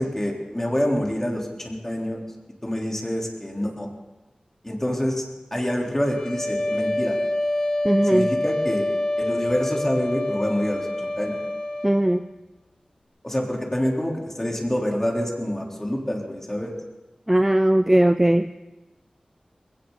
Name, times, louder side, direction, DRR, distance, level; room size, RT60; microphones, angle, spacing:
voice 1, 0.0-2.2 2.6-3.9 4.6-5.2 5.5-7.2 8.1-8.8 9.2-11.4 13.2-16.7, equal, 15° left, -1 dB, 3.6 m, -26 dB
sound 1, 6.0-12.1, left 1 dB, 35° left, 3.7 m, -26 dB
voice 2, 7.8-8.4 11.8-12.3 17.3-18.5, right 1 dB, 15° right, 11 dB, 0.5 m, -19 dB
20.5 x 17.0 x 4.0 m, 1.1 s
wide cardioid pair, 70°, 2 cm